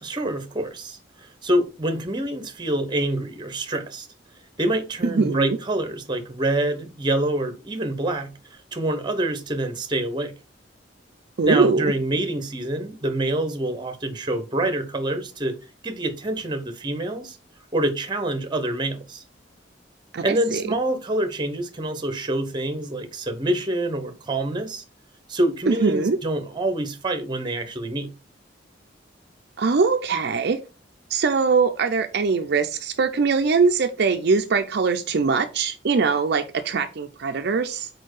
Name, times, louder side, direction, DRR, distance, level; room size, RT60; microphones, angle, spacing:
voice 1, 0.0-4.1 4.6-8.3 8.7-10.3 11.4-15.6 15.8-17.4 17.7-19.2 20.2-24.8 25.3-28.1, right 1 dB, 25° right, 1.0 m, -26 dB
voice 2, 5.0-5.6 11.4-11.8 20.1-20.2 20.5-20.6 25.7-26.2 29.6-30.6 31.1-37.9, right 4 dB, 60° right, 0.5 m, -22 dB
4.5 x 4.5 x 4.7 m
head